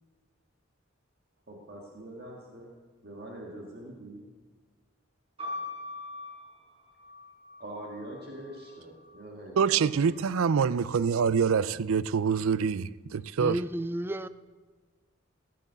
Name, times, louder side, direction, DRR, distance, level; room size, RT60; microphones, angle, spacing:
voice 1, 1.5-2.7 3.0-4.3 7.6-10.1, right 1 dB, 50° right, 1.9 m, -43 dB
sound 1, 5.4-9.2 10.0-10.8, left 2 dB, 30° right, 4.3 m, -43 dB
voice 2, 9.6-13.5, right 6 dB, 85° right, 0.4 m, -25 dB
voice 3, 13.4-14.3, right 1 dB, 10° right, 0.3 m, -32 dB
15.5 x 7.6 x 6.8 m
head